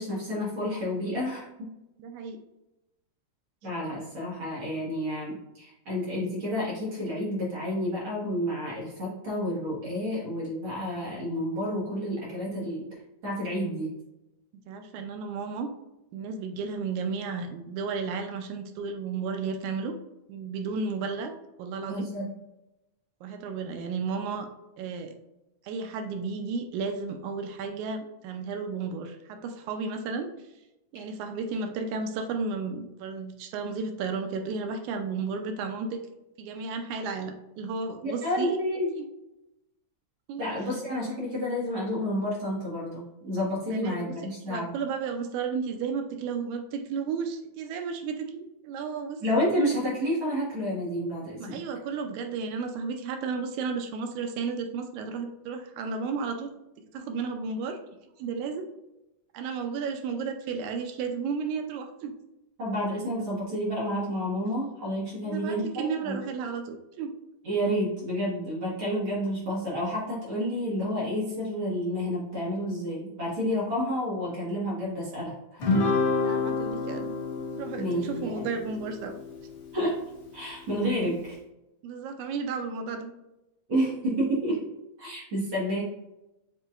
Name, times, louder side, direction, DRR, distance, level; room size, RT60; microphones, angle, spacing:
voice 1, 0.0-1.5 3.6-12.9 13.2-14.0 21.9-22.3 38.0-38.9 40.4-44.7 49.2-51.6 62.6-66.2 67.4-75.7 77.8-78.5 79.7-80.0 80.3-81.4 83.7-84.7 85.0-85.8, equal, 50° right, -5 dB, 1.9 m, -30 dB
voice 2, 2.0-2.4 14.7-15.7 16.1-19.9 20.3-21.3 21.6-22.1 23.2-24.5 24.8-25.1 25.6-30.3 30.9-36.0 36.4-38.6 39.0-39.1 40.3-40.5 43.7-44.1 44.5-49.5 51.4-56.5 56.9-57.8 58.2-58.6 59.3-62.1 65.3-67.1 76.2-77.1 77.6-79.1 81.8-83.1, right 5 dB, 85° right, 6 dB, 2.0 m, -33 dB
Guitar, 75.6-80.2, left 3 dB, 90° left, 0.9 m, -29 dB
7.3 x 2.9 x 2.4 m, 0.93 s
omnidirectional pair, 3.4 m